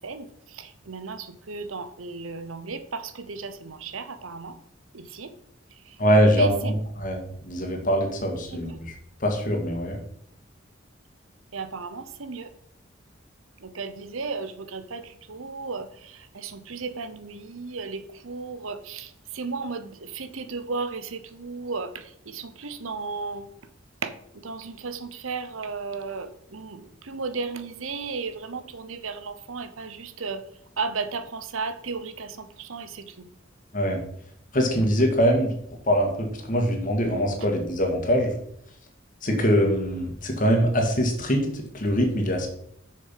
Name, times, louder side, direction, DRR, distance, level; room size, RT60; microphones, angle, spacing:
voice 1, 0.5-4.5 4.9-5.3 6.3-6.7 8.5-8.7 11.5-12.5 13.6-23.5 24.0-24.1 24.4-30.4 30.8-33.1, right 4 dB, 90° right, 11 dB, 0.9 m, -34 dB
voice 2, 6.0-8.9 9.2-10.0 33.7-34.0 34.5-35.5 35.9-38.3 39.2-42.5, equal, 40° left, 3 dB, 1.9 m, -23 dB
6.9 x 6.6 x 5.8 m, 0.70 s
head